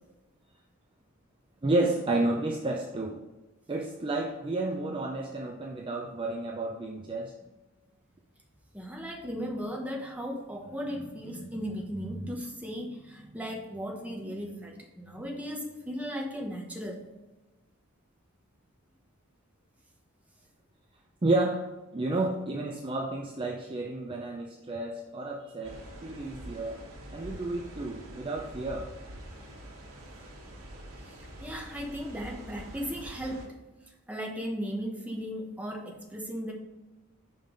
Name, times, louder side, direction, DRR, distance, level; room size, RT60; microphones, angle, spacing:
voice 1, 1.6-3.2 3.7-7.4 21.2-26.8 27.1-28.9, right 2 dB, 25° right, 1 dB, 0.5 m, -31 dB
voice 2, 8.7-17.0 31.0-33.5 34.1-36.5, equal, 5° right, 0 dB, 1.0 m, -36 dB
sound 1, 25.6-33.5, equal, 85° right, 1.4 m, -45 dB
5.4 x 5.3 x 3.8 m, 1.1 s
head